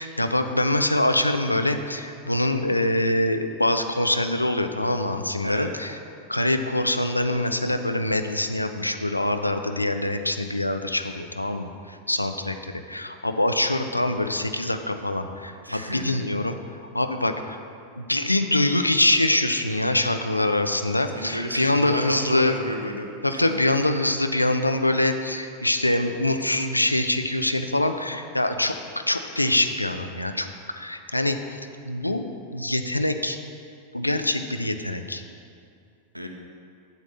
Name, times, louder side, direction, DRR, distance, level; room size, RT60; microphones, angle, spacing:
voice 1, 0.0-6.0 6.3-12.6 12.9-16.5 16.9-17.6 18.0-22.5 23.2-28.8 29.1-30.5 30.8-31.4 31.9-32.3 32.5-33.4 33.9-35.2, left 1 dB, 85° left, 7 dB, 0.4 m, -24 dB
voice 2, 15.6-16.2 21.1-23.4 36.1-36.3, equal, 90° right, 3 dB, 0.7 m, -31 dB
7.8 x 7.2 x 4.0 m, 2.4 s
figure-of-eight pair, 90°, 0 cm